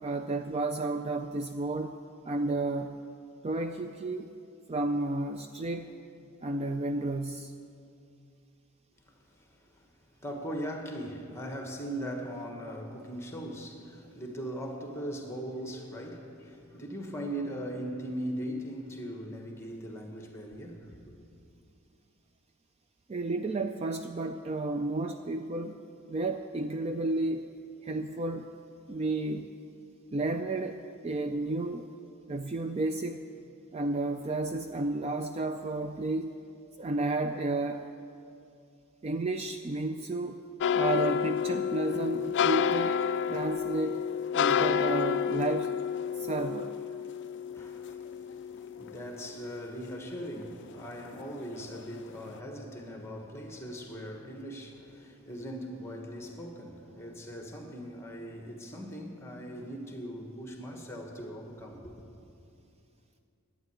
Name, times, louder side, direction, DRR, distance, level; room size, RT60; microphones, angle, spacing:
voice 1, 0.0-2.0 2.2-3.0 3.4-4.3 4.7-6.0 6.4-7.5 23.1-25.8 26.1-27.5 27.8-28.5 28.9-29.5 30.1-31.9 32.3-33.2 33.7-36.4 36.8-37.9 39.0-40.4 40.7-43.0 43.3-44.0 44.3-45.8 46.1-46.7, right 2 dB, 30° right, 0.3 m, -32 dB
voice 2, 9.1-9.9 10.2-21.0 47.5-48.0 48.6-62.1, equal, 10° left, 1.4 m, -40 dB
sound 1, 40.6-49.8 50.2-51.2 51.6-51.9 52.3-52.4, left 7 dB, 55° left, 0.3 m, -30 dB
12.0 x 9.6 x 8.1 m
head